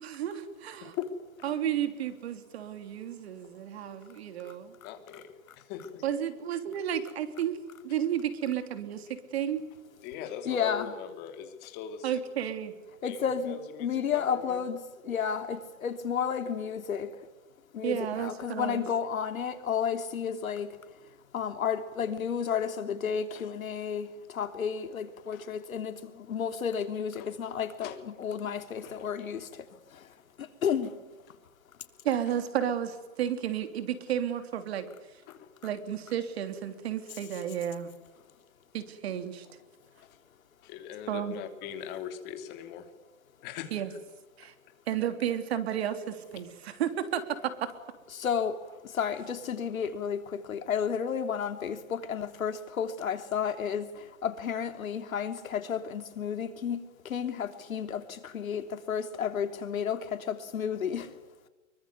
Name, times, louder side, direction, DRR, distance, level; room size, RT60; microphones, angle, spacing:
voice 1, 0.0-0.9 1.4-4.7 6.0-7.6 7.8-9.6 12.0-12.7 17.8-18.9 32.0-34.9 35.6-37.9 38.7-39.5 41.1-41.4 43.7-43.9 44.4-44.5 44.9-47.7, right 9 dB, 50° right, 3.2 m, -32 dB
voice 2, 0.8-1.5 4.8-6.0 7.9-8.0 10.0-12.2 13.0-14.6 23.3-23.5 25.2-25.4 27.2-27.5 27.8-28.0 28.3-28.4 28.8-29.1 35.3-35.5 40.1-40.2 40.6-42.9 43.4-44.0, left 8 dB, 25° left, 3.0 m, -41 dB
voice 3, 10.5-10.9 13.0-13.6 13.8-14.8 15.1-17.3 17.7-20.8 21.3-31.0 48.1-61.2, left 7 dB, 80° left, 3.4 m, -32 dB
25.0 x 24.0 x 9.5 m
hypercardioid pair, 165°, 40 cm